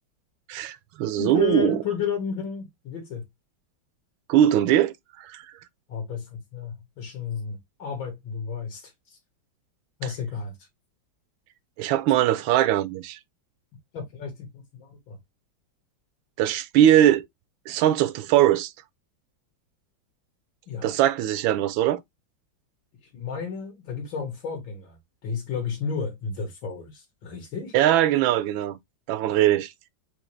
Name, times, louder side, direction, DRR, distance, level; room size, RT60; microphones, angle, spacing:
voice 1, 0.5-1.8 4.3-5.4 11.8-13.2 16.4-17.2 17.7-18.7 20.8-22.0 27.7-28.8 29.1-29.7, right 12 dB, 90° right, 1.4 m, -21 dB
voice 2, 1.2-3.2 5.9-9.2 10.0-10.5 13.9-15.2 20.7-20.9 23.1-25.0 25.2-27.7, left 6 dB, 85° left, 2.4 m, -32 dB
5.1 x 2.9 x 3.1 m
omnidirectional pair, 2.1 m